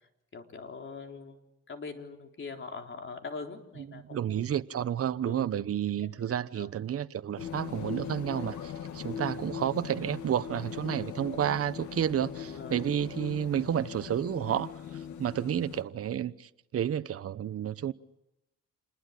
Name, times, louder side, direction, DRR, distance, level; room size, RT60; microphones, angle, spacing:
voice 1, 0.3-1.4 1.7-4.4 5.2-5.5 6.2-6.7 12.5-12.8, left 4 dB, 40° left, 4.0 m, -42 dB
voice 2, 3.8-17.9, right 9 dB, 50° right, 1.0 m, -31 dB
sound 1, 7.4-15.8, left 9 dB, 75° left, 2.3 m, -40 dB
28.0 x 21.0 x 8.4 m
cardioid pair, 90°, 30 cm